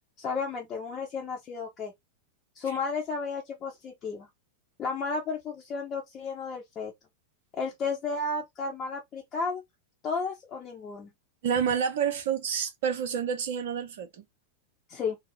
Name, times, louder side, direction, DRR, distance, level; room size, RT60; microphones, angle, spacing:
voice 1, 0.2-1.9 2.6-4.3 4.8-6.9 7.5-9.6 10.0-11.1 14.9-15.2, left 4 dB, 30° left, 0.8 m, -33 dB
voice 2, 11.4-14.2, right 7 dB, 55° right, 0.7 m, -28 dB
2.7 x 2.0 x 3.5 m
figure-of-eight pair, 90°, 0 cm